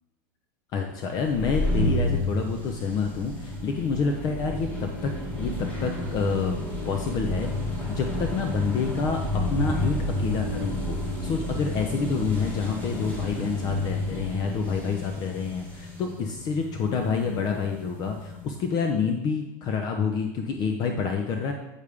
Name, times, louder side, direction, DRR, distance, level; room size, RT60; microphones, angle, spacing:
voice 1, 0.7-5.1 5.4-21.5, left 5 dB, 40° left, 3 dB, 0.9 m, -28 dB
sound 1, 1.2-18.6, left 1 dB, 15° left, 2.1 m, -30 dB
8.3 x 6.4 x 3.6 m, 0.97 s
supercardioid pair, 135°, 10 cm